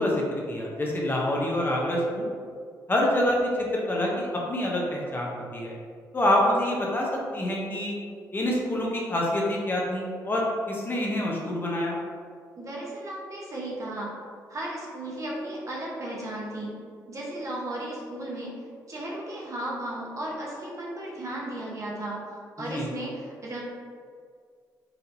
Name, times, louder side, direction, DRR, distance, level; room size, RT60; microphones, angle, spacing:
voice 1, 0.0-2.3 2.9-5.7 6.1-8.0 8.3-12.0 22.7-22.9, left 1 dB, 25° left, -3 dB, 0.7 m, -26 dB
voice 2, 12.6-14.1 14.5-16.7 17.1-18.6 18.9-22.2 22.6-23.6, right 1 dB, 45° right, -4 dB, 1.0 m, -35 dB
4.2 x 2.5 x 2.6 m, 2.1 s
supercardioid pair, 65°, 8 cm